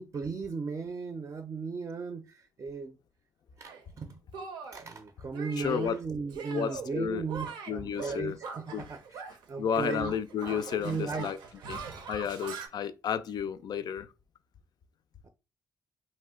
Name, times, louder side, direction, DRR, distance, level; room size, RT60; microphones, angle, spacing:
voice 1, 0.0-3.0 3.6-4.2 4.7-10.1 10.8-11.3 15.2-15.3, right 5 dB, 40° right, 0.4 m, -36 dB
Shatter, 3.6-3.8 4.3-4.9 5.3-5.9 6.3-6.9 7.2-9.4 9.7-12.7, right 5 dB, 85° right, 0.5 m, -42 dB
voice 2, 5.6-6.0 6.5-7.2 7.7-8.3 8.7-8.8 9.6-11.4 11.7-11.8 12.1-14.1, left 8 dB, 65° left, 0.3 m, -32 dB
2.7 x 2.1 x 3.5 m
supercardioid pair, 60°, 8 cm